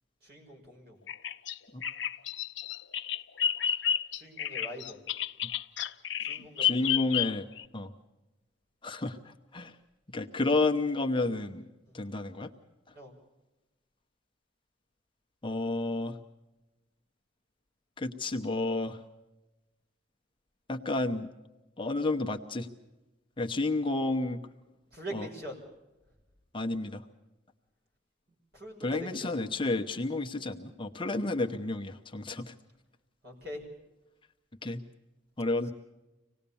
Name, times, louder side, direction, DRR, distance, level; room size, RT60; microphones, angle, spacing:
voice 1, 0.2-1.0 4.1-5.0 6.2-7.3 11.9-12.0 12.9-13.1 24.9-25.6 28.5-29.3 33.2-33.7, equal, 55° right, 1 dB, 5.8 m, -43 dB
Bird vocalization bird call bird song, 1.1-7.6, left 10 dB, 65° left, 0.8 m, -31 dB
voice 2, 6.4-7.5 7.7-7.9 8.8-9.8 10.1-11.7 11.9-12.5 12.9-13.0 15.4-16.2 18.0-19.0 20.7-21.3 21.8-22.7 23.4-24.4 25.1-25.3 26.5-27.0 28.8-32.5 34.6-34.8 35.4-35.7, left 2 dB, 25° left, 5 dB, 0.9 m, -31 dB
25.5 x 19.0 x 7.0 m, 1.0 s
head